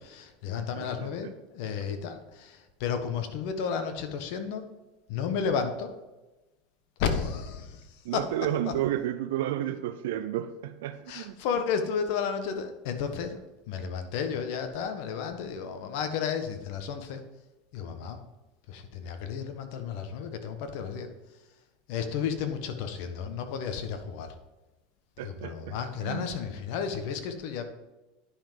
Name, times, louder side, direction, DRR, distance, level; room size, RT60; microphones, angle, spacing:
voice 1, 0.0-4.7 5.1-5.9 7.0-8.3 8.7-8.8 11.1-13.4 13.7-17.2 17.7-18.2 18.7-21.1 21.9-24.4 25.2-27.6, left 6 dB, 65° left, 7 dB, 1.3 m, -32 dB
voice 2, 0.8-1.1 8.0-11.3 25.2-26.3, right 12 dB, 80° right, 9 dB, 0.5 m, -32 dB
10.0 x 5.9 x 5.2 m, 1.1 s
supercardioid pair, 120°, 0 cm